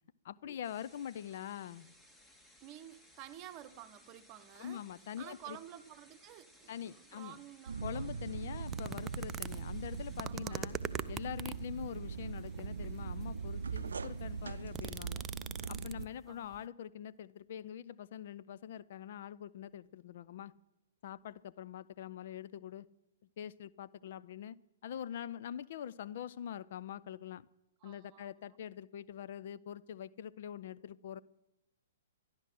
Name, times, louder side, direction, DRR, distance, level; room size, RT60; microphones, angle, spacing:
voice 1, 0.2-1.9 4.6-5.6 6.7-7.4 7.8-10.8 11.1-15.2 15.7-20.5 21.0-22.9 23.4-24.6 24.8-27.5 27.8-31.2, left 9 dB, 55° left, 0.5 m, -44 dB
sound 1, 0.6-14.8, left 1 dB, 10° left, 1.9 m, -63 dB
voice 2, 2.6-4.8 5.2-8.1 10.2-10.6 16.3-16.7 27.8-28.6, right 12 dB, 35° right, 1.0 m, -52 dB
sound 2, 7.7-16.1, right 5 dB, 75° right, 0.5 m, -41 dB
sound 3, 8.7-11.7 12.5-13.1 13.7-13.8 14.0-16.2 16.5-16.6, right 7 dB, 15° right, 0.5 m, -42 dB
12.5 x 11.0 x 7.6 m
figure-of-eight pair, 120°, 0 cm